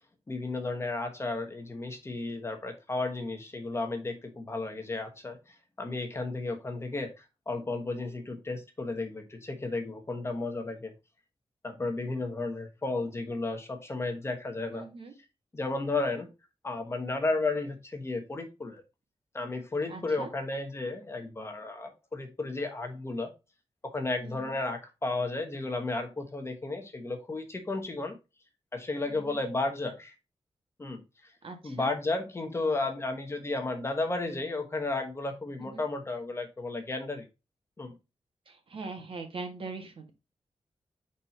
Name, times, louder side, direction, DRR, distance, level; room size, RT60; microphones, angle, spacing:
voice 1, 0.3-5.4 5.8-10.9 11.6-14.9 15.5-16.3 16.6-18.8 19.3-23.3 23.8-28.1 28.7-30.1 30.8-31.0 31.6-37.2 37.8-37.9, left 2 dB, 25° left, 4 dB, 1.0 m, -33 dB
voice 2, 14.7-15.1 19.9-20.3 24.2-24.6 29.1-29.4 31.4-31.9 35.6-35.9 38.5-40.1, right 3 dB, 55° right, 4 dB, 1.6 m, -42 dB
5.3 x 4.3 x 4.2 m, 0.26 s
wide cardioid pair, 170°, 11 cm